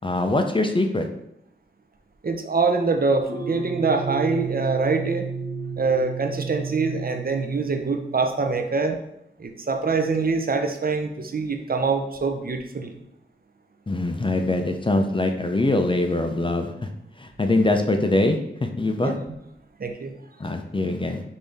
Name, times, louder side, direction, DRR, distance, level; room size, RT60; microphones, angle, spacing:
voice 1, 0.0-1.1 13.9-16.9 17.2-19.2 20.4-21.2, left 2 dB, 25° left, 5 dB, 0.4 m, -23 dB
voice 2, 2.2-5.3 5.8-9.0 9.4-13.0 19.0-19.2 19.8-20.1, right 4 dB, 45° right, 5 dB, 0.5 m, -24 dB
sound 1, 3.3-8.5, right 5 dB, 70° right, 1.1 m, -32 dB
5.3 x 2.6 x 3.4 m, 0.80 s
wide cardioid pair, 65°, 20 cm